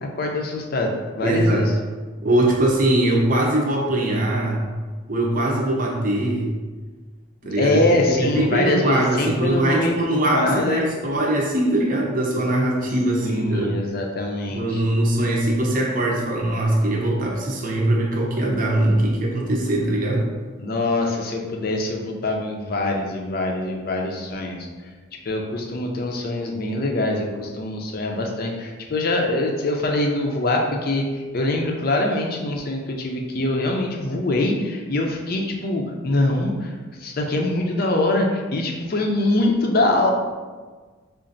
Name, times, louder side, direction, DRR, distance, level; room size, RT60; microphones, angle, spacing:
voice 1, 0.0-1.7 7.6-10.8 13.2-14.8 20.6-24.6 25.3-31.0 31.3-36.7 37.0-40.1, left 2 dB, 45° left, 1 dB, 0.5 m, -23 dB
voice 2, 1.2-1.7 2.2-4.7 5.1-6.5 7.4-7.8 8.1-13.7 14.5-20.3, right 1 dB, 40° right, -1 dB, 0.6 m, -21 dB
4.9 x 2.5 x 2.6 m, 1.4 s
head